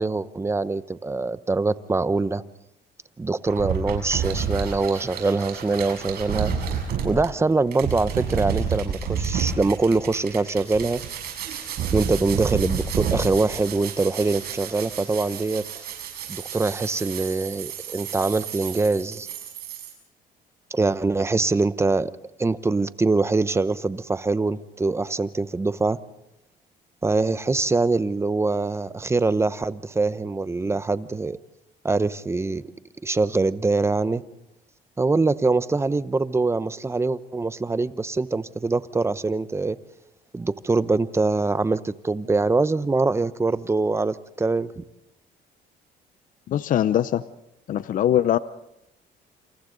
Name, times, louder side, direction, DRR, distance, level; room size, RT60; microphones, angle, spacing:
voice 1, 0.0-2.4 3.2-6.5 7.0-11.0 11.9-15.8 16.3-19.3 20.7-22.1 22.4-26.0 27.0-31.4 31.8-32.6 33.0-34.2 35.0-39.8 40.3-44.8, right 3 dB, 15° right, 0.8 m, -23 dB
sound 1, 3.5-19.9, right 7 dB, 65° right, 6.9 m, -30 dB
voice 2, 46.5-47.2 47.7-48.4, left 11 dB, 50° left, 0.7 m, -21 dB
28.5 x 27.5 x 3.9 m
cardioid pair, 110°, 17 cm